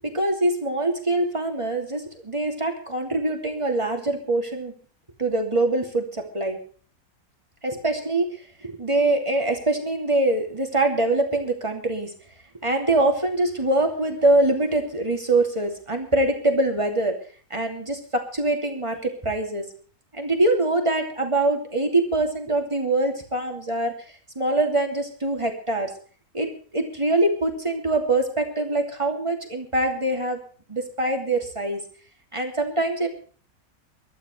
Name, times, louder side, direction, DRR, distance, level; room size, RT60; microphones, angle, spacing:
voice 1, 0.0-4.7 5.2-6.6 7.6-12.1 12.6-17.2 17.5-19.6 20.1-23.9 24.3-25.9 26.3-30.4 30.7-31.8 32.3-33.1, right 2 dB, 20° right, 3 dB, 2.8 m, -24 dB
24.0 x 12.5 x 3.3 m, 0.42 s
omnidirectional pair, 1.5 m